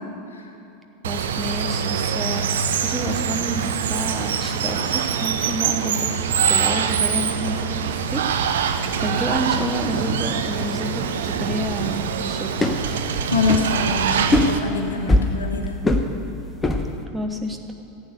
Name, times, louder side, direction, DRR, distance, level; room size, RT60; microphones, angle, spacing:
voice 1, 1.0-6.1 6.5-7.8 8.1-12.5 17.1-17.6, right 1 dB, 10° right, 3 dB, 1.2 m, -29 dB
Water, 1.0-14.6, right 7 dB, 65° right, 0.8 m, -24 dB
sound 1, 8.8-10.7 11.0-11.1 11.4-17.0, left 1 dB, 15° left, 1.0 m, -23 dB
voice 2, 13.3-15.8, left 3 dB, 75° left, 3 dB, 1.6 m, -24 dB
15.0 x 8.7 x 6.6 m, 2.9 s
figure-of-eight pair, 85°, 0 cm